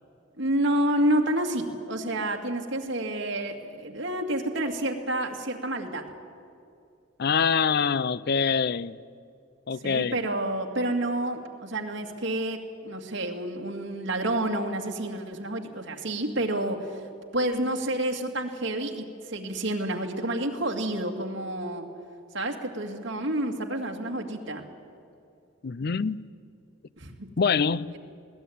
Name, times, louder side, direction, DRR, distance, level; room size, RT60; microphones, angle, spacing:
voice 1, 0.4-6.0 9.8-17.0 17.3-21.9 22.3-24.6 27.0-27.3 27.9-28.0, right 1 dB, 65° right, 2.3 m, -29 dB
voice 2, 7.2-9.0 9.7-10.2 25.6-26.3 27.4-28.0, left 6 dB, 55° left, 0.5 m, -25 dB
21.0 x 17.5 x 9.4 m
head